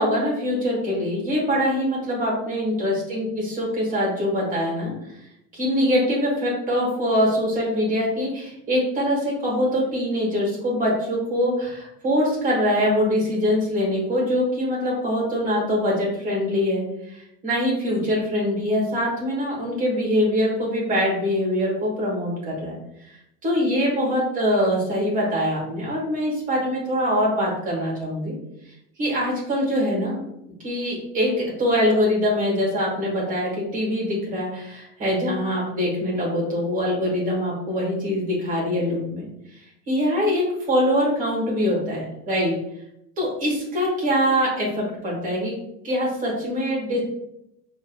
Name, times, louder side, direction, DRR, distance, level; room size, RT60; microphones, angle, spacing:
voice 1, 0.0-4.9 5.5-23.1 23.4-28.3 29.0-30.2 30.6-31.3 31.6-39.3 39.9-42.5 43.2-45.5 45.8-47.0, equal, 25° right, -4 dB, 1.3 m, -23 dB
5.4 x 2.7 x 2.3 m, 0.81 s
cardioid pair, 175°, 32 cm